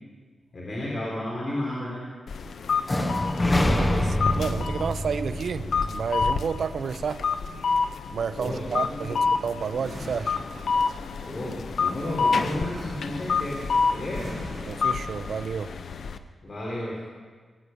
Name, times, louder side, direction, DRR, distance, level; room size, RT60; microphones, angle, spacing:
voice 1, 0.5-2.1 8.4-9.2 11.2-14.4 16.4-17.0, left 1 dB, 40° left, -4 dB, 3.6 m, -33 dB
sound 1, 2.3-16.2, left 5 dB, 75° left, 0.8 m, -29 dB
sound 2, 2.9-6.8, left 1 dB, 25° left, 1.1 m, -26 dB
voice 2, 3.7-7.2 8.1-10.4 14.7-15.8, right 6 dB, 70° right, 13 dB, 0.6 m, -31 dB
sound 3, 9.8-11.1 12.3-13.6 14.1-15.3, right 1 dB, 40° right, 5.3 m, -42 dB
19.0 x 8.4 x 9.0 m, 1.5 s
wide cardioid pair, 105°, 0 cm